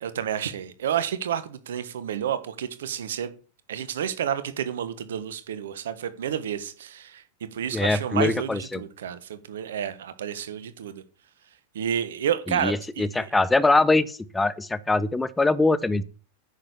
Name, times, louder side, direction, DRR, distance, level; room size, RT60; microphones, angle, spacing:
voice 1, 0.0-3.3 3.7-7.2 7.5-11.0 11.7-13.3, right 9 dB, 60° right, 1.3 m, -30 dB
voice 2, 7.7-8.8 12.5-16.0, left 2 dB, 10° left, 0.6 m, -23 dB
9.7 x 6.6 x 7.0 m
figure-of-eight pair, 90°, 0 cm